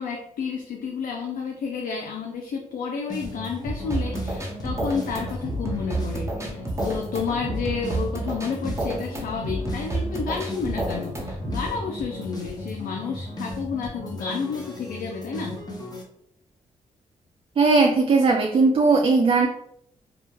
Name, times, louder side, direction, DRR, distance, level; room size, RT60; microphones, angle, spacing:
voice 1, 0.0-15.6, left 5 dB, 70° left, 1 dB, 0.4 m, -31 dB
sound 1, 3.1-16.0, left 1 dB, 25° left, 0.8 m, -36 dB
sound 2, 3.7-11.7, right 2 dB, 20° right, 0.8 m, -30 dB
voice 2, 17.6-19.5, right 3 dB, 40° right, 2 dB, 0.3 m, -18 dB
2.3 x 2.1 x 3.1 m, 0.74 s
supercardioid pair, 50°, 15 cm